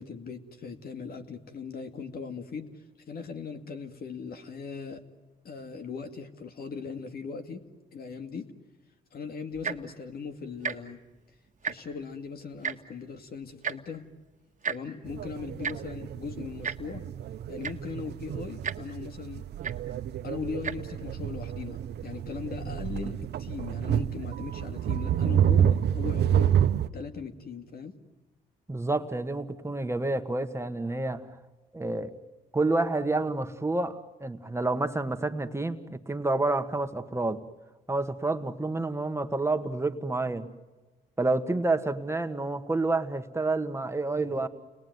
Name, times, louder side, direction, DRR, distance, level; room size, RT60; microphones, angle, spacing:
voice 1, 0.0-2.7 3.0-5.0 5.4-7.7 7.9-8.5 9.1-11.0 11.7-14.1 14.7-17.0 17.5-19.5 20.2-26.6 26.9-28.0, left 5 dB, 60° left, 7 dB, 2.4 m, -39 dB
Tick-tock, 9.5-9.9 10.6-10.8 11.1-11.2 11.5-12.0 12.6-12.8 13.6-13.8 14.6-14.8 15.6-15.7 16.6-16.8 17.3-17.4 17.6-17.9 18.6-18.8 19.6-19.8 20.5-20.7 21.5-21.6, right 6 dB, 45° right, 1.7 m, -32 dB
sound 1, 15.1-26.9, right 10 dB, 75° right, 0.9 m, -29 dB
voice 2, 28.7-31.3 31.7-32.1 32.5-37.4 37.9-40.5 41.2-44.5, right 2 dB, 15° right, 7 dB, 1.6 m, -29 dB
29.5 x 21.0 x 9.5 m, 1.2 s
cardioid pair, 70°, 17 cm